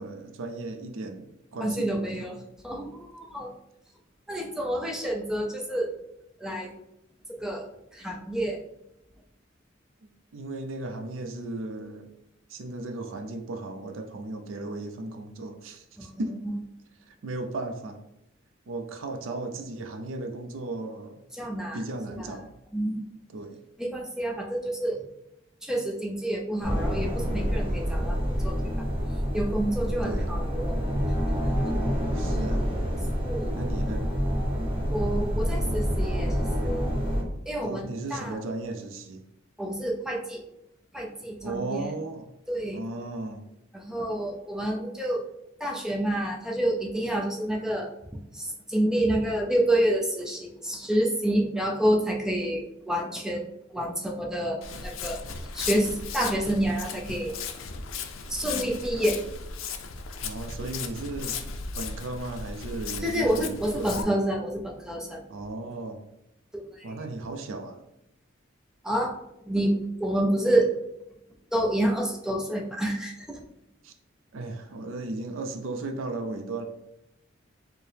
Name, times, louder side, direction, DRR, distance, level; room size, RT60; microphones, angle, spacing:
voice 1, 0.0-2.5 10.3-12.1 12.5-16.4 17.1-18.0 18.7-21.2 21.7-22.5 23.3-23.6 30.0-30.4 32.1-32.6 33.5-34.1 37.6-39.2 41.4-42.3 42.7-43.5 60.2-61.4 61.7-64.2 65.3-66.0 66.8-67.8 73.8-73.9 74.3-76.7, right 2 dB, 80° right, 5 dB, 0.4 m, -36 dB
voice 2, 1.6-2.3 2.6-3.5 4.3-5.9 6.4-6.7 7.3-7.7 7.9-8.6 21.4-21.8 22.2-22.3 22.7-23.1 23.8-25.0 25.6-28.6 29.3-30.8 33.1-33.5 34.9-36.3 36.6-36.9 37.5-38.4 39.6-40.4 40.9-41.8 42.5-42.8 43.7-45.2 45.6-47.9 48.4-53.4 53.7-55.2 55.5-57.3 58.3-59.2 63.0-65.2 66.5-66.6 68.8-69.1 69.5-70.7 71.5-73.4, right 1 dB, 5° right, 0 dB, 0.5 m, -28 dB
sound 1, 26.6-37.2, equal, 30° right, 0.9 m, -27 dB
Walk footsteps, 54.6-64.0, left 5 dB, 90° left, 0.4 m, -36 dB
4.5 x 2.1 x 3.3 m, 0.84 s
head